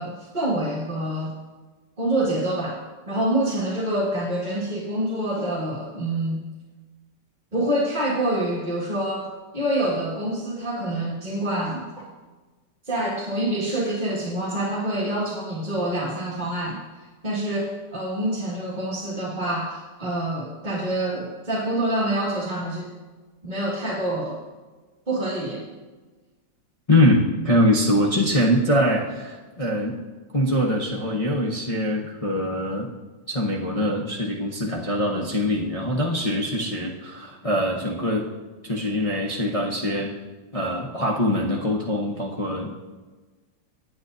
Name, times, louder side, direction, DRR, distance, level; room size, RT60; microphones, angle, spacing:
voice 1, 0.0-1.3 2.0-2.8 3.1-6.4 7.5-11.9 12.9-16.8 17.2-22.9 23.4-24.4 25.1-25.6, right 1 dB, 20° right, -7 dB, 1.9 m, -26 dB
voice 2, 26.9-30.0 30.3-32.9 33.3-38.3 38.6-40.2 40.5-42.8, left 1 dB, 55° left, -2 dB, 0.3 m, -23 dB
19.0 x 9.0 x 2.7 m, 1.3 s
omnidirectional pair, 2.4 m